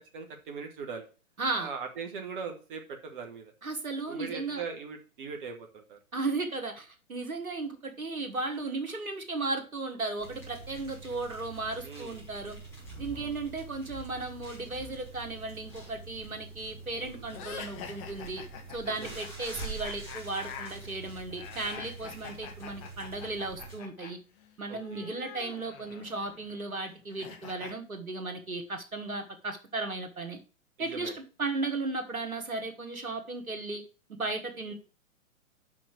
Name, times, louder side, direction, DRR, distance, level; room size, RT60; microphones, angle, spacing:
voice 1, 0.1-1.1 1.5-3.5 4.1-6.0 11.8-12.2 13.1-13.3 17.0-17.3 18.9-19.2 24.7-25.1 30.8-31.1, right 5 dB, 35° right, 4 dB, 1.3 m, -40 dB
voice 2, 1.4-1.7 3.6-4.6 6.1-12.6 13.0-18.4 18.7-24.2 24.6-30.4 30.8-33.8 34.2-34.7, right 3 dB, 80° right, 6 dB, 1.9 m, -35 dB
sound 1, 10.2-23.8, right 3 dB, 5° left, 3.8 m, -45 dB
sound 2, 17.3-24.1 24.4-27.7, left 7 dB, 25° left, 1.1 m, -46 dB
6.0 x 6.0 x 6.3 m, 0.36 s
figure-of-eight pair, 120°, 43 cm